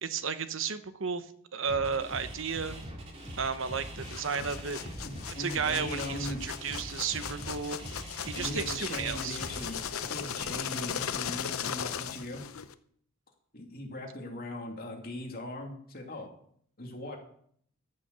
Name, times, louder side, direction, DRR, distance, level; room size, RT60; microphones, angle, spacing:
voice 1, 0.0-1.3 1.5-2.8 3.4-4.8 5.3-7.8 8.2-9.4, right 6 dB, 65° right, 11 dB, 1.0 m, -33 dB
sound 1, 1.7-10.8, equal, 30° right, 2.9 m, -43 dB
sound 2, 4.0-12.7, left 8 dB, 90° left, 0.7 m, -38 dB
voice 2, 5.0-6.4 8.3-12.4 13.5-16.3 16.8-17.2, left 1 dB, 45° left, 1 dB, 2.5 m, -39 dB
13.5 x 6.9 x 6.9 m, 0.64 s
head